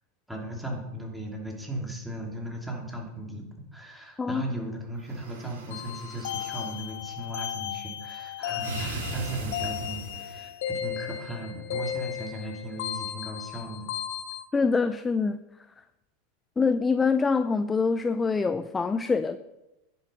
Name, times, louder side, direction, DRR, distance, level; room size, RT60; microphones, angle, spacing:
voice 1, 0.3-13.9, right 1 dB, ahead, 0 dB, 2.7 m, -37 dB
sound 1, 5.0-6.7 8.6-10.5, right 2 dB, 75° right, 2.4 m, -38 dB
sound 2, 5.7-14.4, left 10 dB, 65° left, 1.0 m, -35 dB
voice 2, 14.5-15.4 16.6-19.4, left 4 dB, 15° left, 11 dB, 0.4 m, -25 dB
10.0 x 7.0 x 5.1 m, 0.95 s
hypercardioid pair, 90°, 0 cm